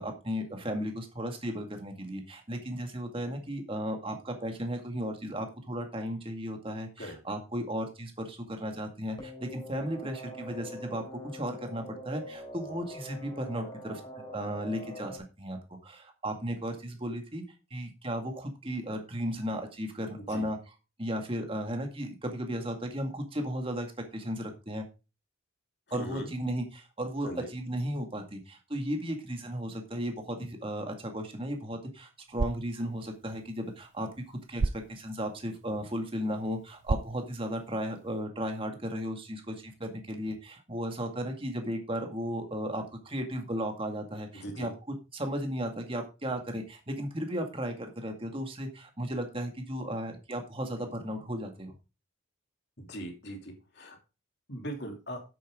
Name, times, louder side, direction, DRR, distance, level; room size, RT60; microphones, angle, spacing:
voice 1, 0.0-14.0 14.3-17.4 17.7-20.6 21.0-23.9 24.1-24.9 25.9-44.7 45.1-51.7, equal, 25° right, 4 dB, 2.1 m, -35 dB
sound 1, 9.2-15.2, equal, 20° left, 3.6 m, -44 dB
voice 2, 20.2-20.5 25.9-26.3 27.2-27.5 44.3-44.7 52.8-54.0 54.5-55.2, right 1 dB, 55° left, 3 dB, 2.9 m, -40 dB
sound 2, 32.2-38.2, right 3 dB, 55° right, 0.5 m, -38 dB
10.5 x 8.7 x 3.7 m, 0.30 s
head